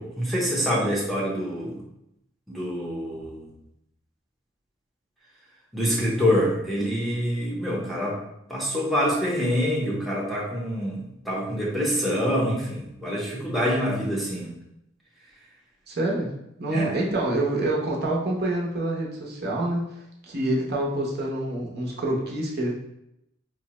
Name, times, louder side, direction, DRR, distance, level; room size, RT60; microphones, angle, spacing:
voice 1, 0.0-1.8 2.5-3.5 5.7-8.2 8.5-14.5 16.7-16.9, equal, ahead, -4 dB, 0.6 m, -26 dB
voice 2, 15.9-16.3 16.6-20.0 20.2-22.7, right 1 dB, 55° right, -2 dB, 0.7 m, -26 dB
4.5 x 2.1 x 2.9 m, 0.81 s
head